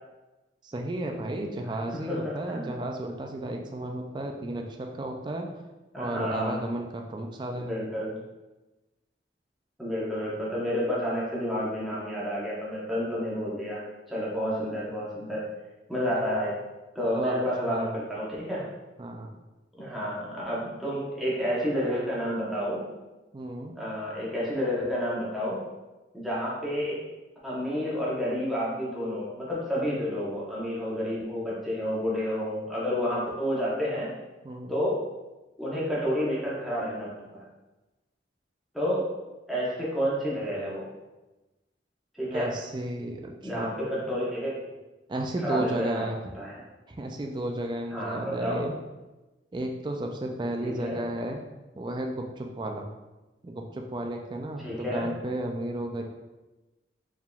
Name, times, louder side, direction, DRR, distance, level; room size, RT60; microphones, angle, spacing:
voice 1, 0.6-5.5 6.0-7.9 16.2-16.3 17.1-17.4 17.7-18.0 19.0-19.3 23.3-23.8 34.4-34.7 42.3-43.7 45.1-46.2 46.9-48.7 49.5-51.4 51.7-52.9 53.4-56.0, right 1 dB, 25° right, 2 dB, 0.3 m, -33 dB
voice 2, 2.1-2.7 5.9-6.6 7.6-8.2 9.8-13.8 14.1-15.5 15.9-16.6 16.9-18.6 19.8-22.8 23.8-25.6 26.1-27.0 27.4-34.1 34.7-35.0 35.6-37.4 38.7-39.1 39.5-40.8 42.1-42.5 43.4-44.5 45.4-46.0 46.4-46.5 47.9-48.7 50.6-51.0 54.6-55.1, equal, ahead, -8 dB, 0.9 m, -30 dB
4.6 x 3.5 x 2.3 m, 1.1 s
head